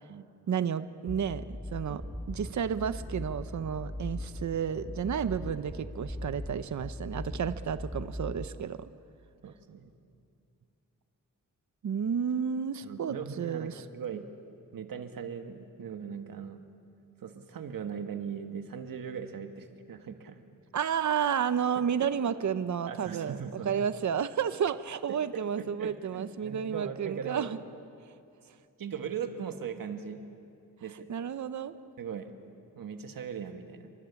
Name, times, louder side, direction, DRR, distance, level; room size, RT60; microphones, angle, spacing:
voice 1, 0.5-1.4 1.7-2.0 2.3-8.9 11.8-13.8 20.7-23.4 23.6-27.6 31.1-31.7, right 8 dB, 60° right, 12 dB, 0.8 m, -31 dB
sound 1, 1.1-8.5, left 1 dB, 5° left, 1.3 m, -40 dB
voice 2, 9.4-9.9 12.8-14.3 14.7-16.6 17.2-20.4 22.0-22.3 22.9-23.8 25.1-27.5 28.8-30.2 30.8-31.1 32.0-32.3 32.7-33.9, right 7 dB, 85° right, 6 dB, 1.6 m, -39 dB
28.5 x 24.5 x 7.1 m, 2.5 s
wide cardioid pair, 125°, 33 cm